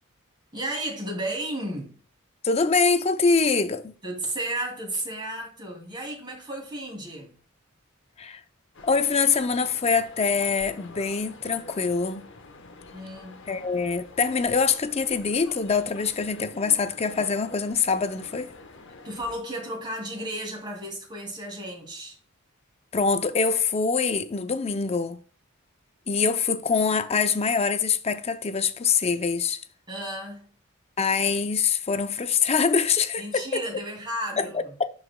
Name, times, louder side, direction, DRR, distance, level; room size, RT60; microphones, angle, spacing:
voice 1, 0.5-1.9 4.0-7.4 12.9-13.4 19.0-22.2 29.9-30.5 33.2-34.7, right 1 dB, 20° right, 2.6 m, -33 dB
voice 2, 2.4-3.9 8.2-8.4 8.8-12.3 13.5-18.5 22.9-25.2 26.1-29.6 31.0-33.6 34.4-34.5 34.8-34.9, left 5 dB, 30° left, 0.5 m, -24 dB
sound 1, 8.7-19.4, left 2 dB, 55° left, 1.0 m, -47 dB
11.0 x 4.8 x 2.2 m
head